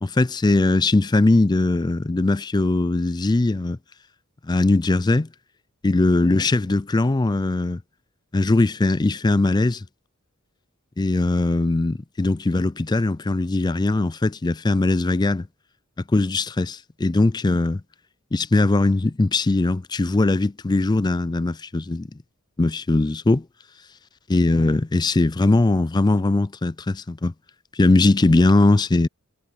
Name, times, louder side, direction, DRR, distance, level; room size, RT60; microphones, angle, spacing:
voice 1, 0.0-3.8 4.5-5.3 5.8-7.8 8.3-9.9 11.0-15.5 16.1-17.8 18.3-22.1 22.6-23.4 24.3-27.3 27.8-29.1, left 2 dB, 20° left, 0.4 m, -20 dB
head